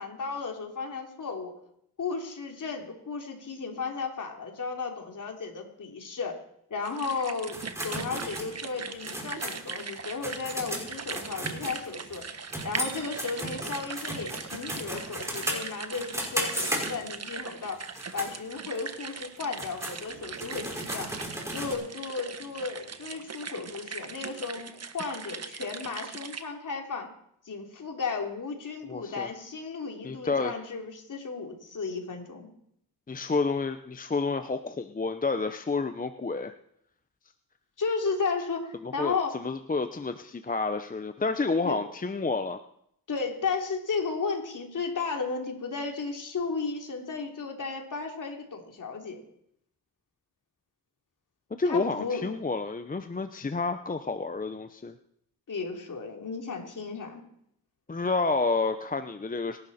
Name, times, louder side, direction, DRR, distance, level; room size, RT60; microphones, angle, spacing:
voice 1, 0.0-1.5 2.0-6.4 6.7-12.2 12.6-17.8 18.1-21.1 21.5-27.1 27.4-32.5 37.8-39.3 41.6-41.8 43.1-49.2 51.6-52.3 55.5-57.2, left 4 dB, 50° left, 2 dB, 3.4 m, -34 dB
sound 1, 6.8-26.4, right 5 dB, 40° right, 1.4 m, -40 dB
sound 2, 7.5-12.2 12.5-17.3 17.8-18.3 18.7-18.8 19.4-21.7, right 1 dB, 5° right, 5.2 m, -35 dB
voice 2, 28.9-29.3 30.0-30.5 33.1-36.5 38.8-39.1 39.4-42.6 51.6-54.9 57.9-59.6, left 3 dB, 20° left, 9 dB, 0.8 m, -29 dB
24.5 x 12.0 x 4.3 m, 0.72 s
cardioid pair, 85°, 39 cm